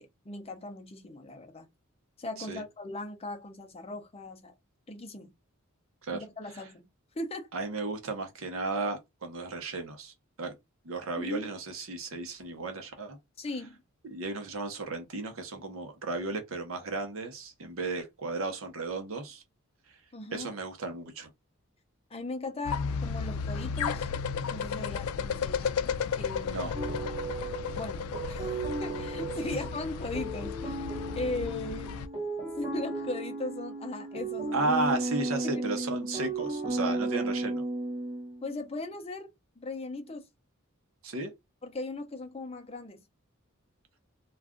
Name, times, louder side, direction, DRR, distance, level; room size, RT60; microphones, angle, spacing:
voice 1, 0.0-1.7 2.2-4.5 4.9-5.3 6.1-6.9 7.1-7.5 11.2-11.5 13.4-13.8 20.1-20.5 22.1-24.1 24.5-25.9 26.2-26.7 27.7-28.4 28.8-32.0 32.6-34.7 35.4-35.5 36.0-36.1 38.4-39.3 39.6-40.3 41.6-43.0, left 2 dB, 30° left, 0.6 m, -38 dB
voice 2, 7.5-10.5 10.8-13.2 14.1-19.4 20.3-21.3 26.5-26.7 34.5-37.6 41.0-41.3, right 3 dB, 75° right, 0.8 m, -34 dB
sound 1, 22.6-32.1, left 6 dB, 85° left, 0.4 m, -34 dB
sound 2, 26.7-38.5, right 2 dB, 25° right, 0.9 m, -35 dB
2.5 x 2.3 x 3.5 m
head